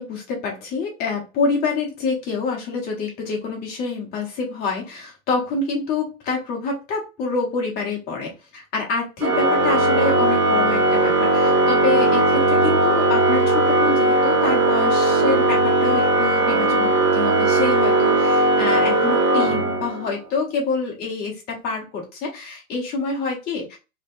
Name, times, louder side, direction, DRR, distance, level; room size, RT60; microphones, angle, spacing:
voice 1, 0.0-23.8, left 4 dB, 20° left, 0 dB, 1.0 m, -27 dB
Organ, 9.2-20.1, right 2 dB, 85° right, 1.3 m, -18 dB
3.1 x 3.0 x 2.5 m, 0.28 s
hypercardioid pair, 140°, 42 cm